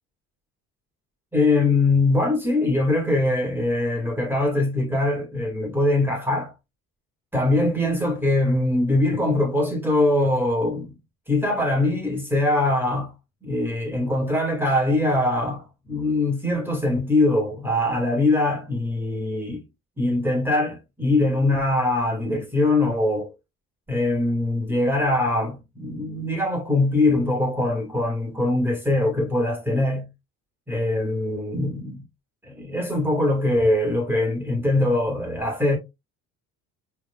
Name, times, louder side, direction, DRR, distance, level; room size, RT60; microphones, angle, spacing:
voice 1, 1.3-6.5 7.3-11.0 11.3-13.1 13.4-19.6 20.0-23.3 23.9-30.1 30.7-32.0 32.4-35.8, left 2 dB, 5° right, 1.8 m, -22 dB
4.6 x 3.6 x 2.3 m
supercardioid pair, 95°, 35 cm